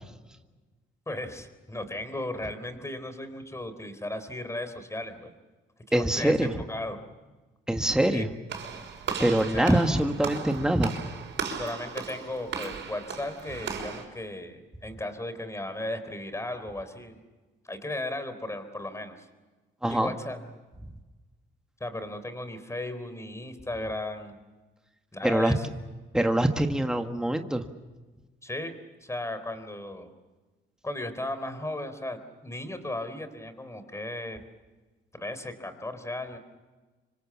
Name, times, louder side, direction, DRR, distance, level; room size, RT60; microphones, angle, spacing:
voice 1, 1.1-5.3 5.9-7.0 8.1-8.3 8.7-8.8 9.5-9.8 11.5-17.2 17.6-19.3 19.9-20.4 21.8-24.4 25.1-25.7 28.4-28.7 29.0-30.1 30.8-34.4 35.1-36.4, left 1 dB, 15° left, 10 dB, 3.9 m, -36 dB
voice 2, 5.9-6.5 7.7-8.3 9.2-10.9 19.8-20.1 25.2-25.5 26.1-27.7, right 1 dB, 5° right, 5 dB, 1.7 m, -24 dB
Walk footsteps / Slam, 8.5-14.0, right 6 dB, 70° right, 5.9 m, -36 dB
26.5 x 24.5 x 7.2 m, 1.2 s
cardioid pair, 90°, 20 cm